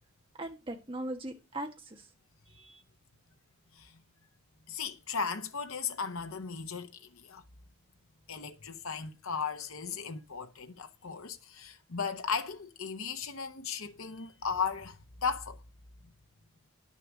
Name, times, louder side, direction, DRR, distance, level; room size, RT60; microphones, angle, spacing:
voice 1, 0.4-2.1 2.5-2.8, right 1 dB, 25° right, 1.5 m, -40 dB
voice 2, 4.7-7.4 8.3-15.6, left 5 dB, 70° left, 0.9 m, -36 dB
9.7 x 6.8 x 6.0 m
head